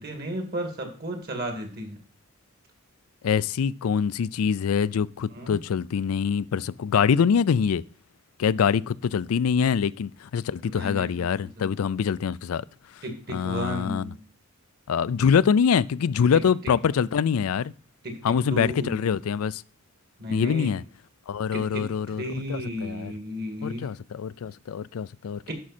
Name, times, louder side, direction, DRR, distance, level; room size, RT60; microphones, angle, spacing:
voice 1, 0.0-2.0 5.3-5.6 10.6-11.3 11.6-11.7 13.0-14.2 16.6-16.7 18.0-19.2 20.2-20.7 21.5-23.9 25.5-25.6, equal, 50° right, 2.4 m, -34 dB
voice 2, 3.2-7.8 8.4-12.6 13.3-14.1 14.9-17.7 18.2-19.6 20.3-20.8 21.3-23.1 23.6-25.5, left 7 dB, 85° left, 0.4 m, -24 dB
11.0 x 6.1 x 4.3 m
head